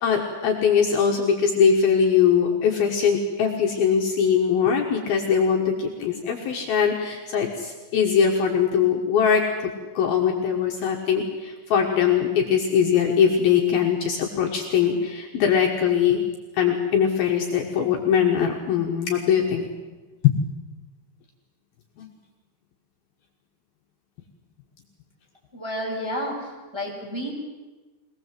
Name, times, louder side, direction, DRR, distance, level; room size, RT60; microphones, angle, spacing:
voice 1, 0.0-16.2 16.5-19.7 20.2-20.3 22.0-22.1, left 7 dB, 65° left, 1 dB, 3.1 m, -21 dB
voice 2, 25.5-27.3, equal, 5° right, -4 dB, 5.4 m, -31 dB
23.5 x 18.5 x 7.7 m, 1.2 s
omnidirectional pair, 5.0 m